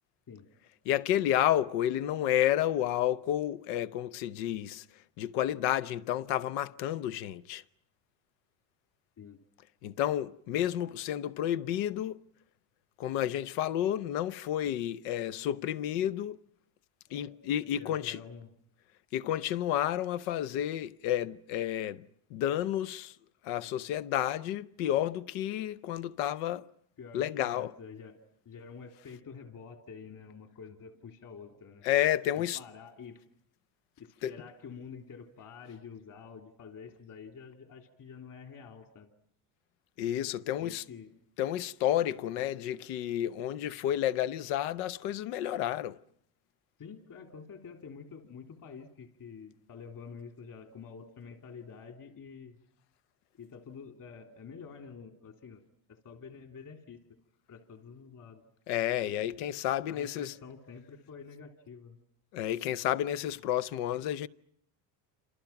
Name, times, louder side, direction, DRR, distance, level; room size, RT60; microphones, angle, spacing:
voice 1, 0.9-4.8 5.2-7.6 9.8-12.2 13.0-16.4 17.1-18.2 19.1-22.0 22.3-23.1 23.4-26.7 27.1-27.7 31.8-32.6 34.2-34.3 40.0-40.8 41.4-46.0 58.7-60.3 62.3-64.3, left 11 dB, 85° left, 0.9 m, -31 dB
voice 2, 17.8-18.5 27.0-28.2 28.4-31.9 32.3-33.2 34.0-39.1 40.6-41.1 42.3-42.4 46.8-52.6 53.3-55.6 55.9-57.0 57.5-58.4 59.9-62.0, left 6 dB, 45° left, 3.4 m, -48 dB
28.5 x 27.0 x 5.9 m
cardioid pair, 120°, 46 cm